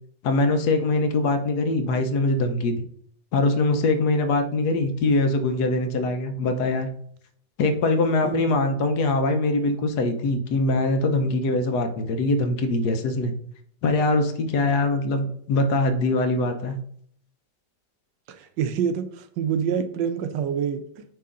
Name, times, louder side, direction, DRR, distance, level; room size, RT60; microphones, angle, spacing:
voice 1, 0.2-2.9 3.3-6.9 7.6-13.3 13.8-16.7, left 2 dB, 65° left, 7 dB, 1.2 m, -23 dB
voice 2, 18.3-21.0, right 7 dB, 80° right, 9 dB, 1.3 m, -27 dB
9.1 x 3.1 x 3.7 m, 0.63 s
omnidirectional pair, 1.9 m